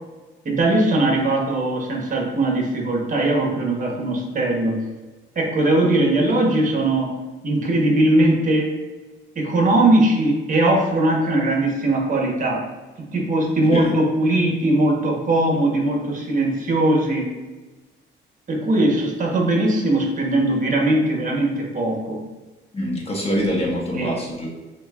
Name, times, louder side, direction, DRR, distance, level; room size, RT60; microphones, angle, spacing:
voice 1, 0.4-4.8 5.3-7.1 7.4-8.8 9.3-12.6 13.0-17.3 18.5-22.2 23.9-24.1, right 1 dB, 40° right, 0 dB, 1.2 m, -20 dB
voice 2, 22.7-24.5, equal, 30° left, -2 dB, 1.3 m, -24 dB
6.3 x 2.7 x 2.5 m, 1.2 s
cardioid pair, 90°, 20 cm